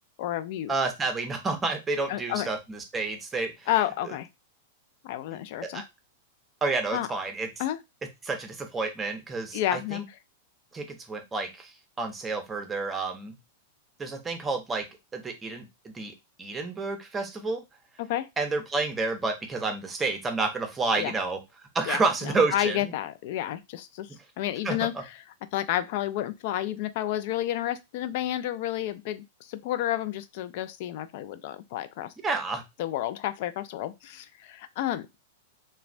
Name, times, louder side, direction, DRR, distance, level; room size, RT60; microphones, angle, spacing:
voice 1, 0.2-0.7 2.1-2.5 3.7-4.3 5.0-5.8 6.9-7.1 7.6-7.8 9.5-10.0 18.0-18.3 21.0-21.1 21.9-24.1 24.4-24.9 25.5-32.1 32.8-35.1, left 13 dB, 55° left, 0.3 m, -30 dB
voice 2, 0.7-3.7 4.0-4.1 5.6-5.8 6.6-7.5 8.2-10.0 10.7-13.4 14.0-14.9 15.1-17.6 18.4-21.4 21.7-22.9 24.6-25.0 32.2-32.6, right 3 dB, 15° right, 0.6 m, -30 dB
3.1 x 2.2 x 2.4 m
hypercardioid pair, 135°, 0 cm